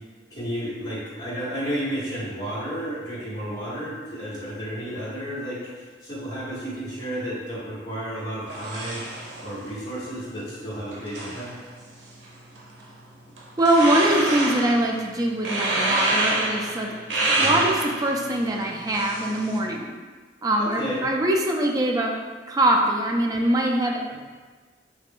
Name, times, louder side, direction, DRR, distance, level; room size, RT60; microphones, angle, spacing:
voice 1, 0.3-11.5 17.4-17.6 20.6-21.0 24.1-24.2, equal, 20° left, -10 dB, 1.3 m, -32 dB
sound 1, 8.5-19.6, right 2 dB, 90° right, 0.6 m, -29 dB
voice 2, 13.6-16.9 17.3-19.8 20.4-22.1 22.5-24.2, right 1 dB, 20° right, 0 dB, 0.3 m, -23 dB
3.2 x 2.5 x 3.5 m, 1.4 s
head